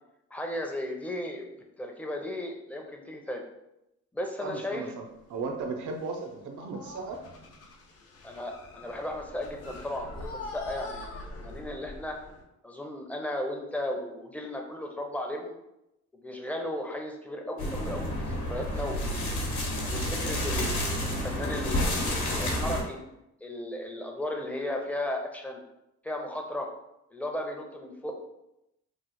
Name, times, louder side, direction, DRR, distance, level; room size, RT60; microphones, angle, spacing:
voice 1, 0.3-1.5 1.8-3.4 4.1-4.8 8.2-12.2 12.6-15.6 16.1-19.3 19.8-20.7 21.0-23.0 23.4-25.6 26.0-26.7 27.1-28.1, left 1 dB, 5° left, 2 dB, 0.5 m, -35 dB
voice 2, 4.4-7.2, right 4 dB, 75° right, 3 dB, 0.6 m, -36 dB
sound 1, 5.2-5.6 5.9-6.3 6.6-12.4, left 2 dB, 50° left, 0.7 m, -44 dB
sound 2, 17.6-22.8, left 1 dB, 75° left, 1.0 m, -30 dB
3.1 x 2.0 x 4.1 m, 0.86 s
cardioid pair, 90°, 30 cm